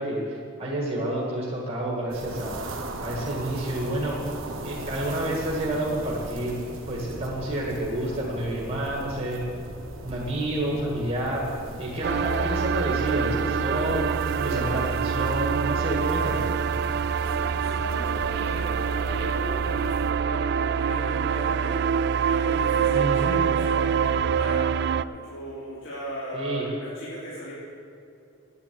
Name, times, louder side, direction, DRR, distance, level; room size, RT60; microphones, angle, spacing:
voice 1, 0.0-2.6 3.0-4.2 4.6-6.6 6.9-9.4 10.0-11.5 11.8-14.0 14.3-16.5 22.9-23.4 26.3-26.7, right 1 dB, 30° right, -4 dB, 1.9 m, -29 dB
sound 1, 2.1-20.1, right 1 dB, 70° right, 1.3 m, -39 dB
sound 2, 12.0-25.0, right 7 dB, 55° right, 0.3 m, -25 dB
voice 2, 17.2-21.9 22.2-24.7 25.1-27.5, equal, 70° left, -10 dB, 3.5 m, -37 dB
10.0 x 8.9 x 9.3 m, 2.7 s
head